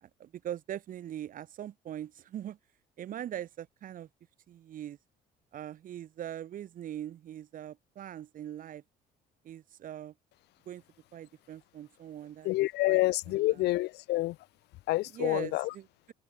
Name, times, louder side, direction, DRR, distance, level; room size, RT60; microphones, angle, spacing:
voice 1, 0.0-2.6 3.0-4.1 4.5-5.0 5.5-8.8 9.4-10.1 10.7-10.8 11.1-12.5 12.9-13.0 13.3-13.6 15.1-15.9, right 11 dB, 55° right, 1.2 m, -41 dB
voice 2, 12.4-14.4 14.9-15.7, left 18 dB, 80° left, 1.1 m, -28 dB
open air
cardioid pair, 110°, 17 cm